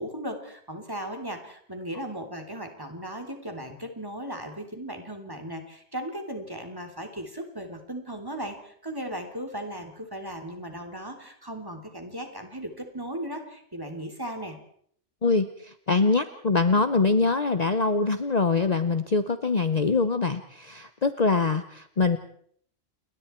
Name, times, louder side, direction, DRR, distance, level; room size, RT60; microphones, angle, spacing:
voice 1, 0.0-14.6, right 1 dB, 20° right, 4 dB, 3.3 m, -37 dB
voice 2, 15.2-22.2, left 4 dB, 35° left, 10 dB, 1.0 m, -24 dB
29.5 x 22.0 x 4.5 m, 0.62 s
omnidirectional pair, 1.2 m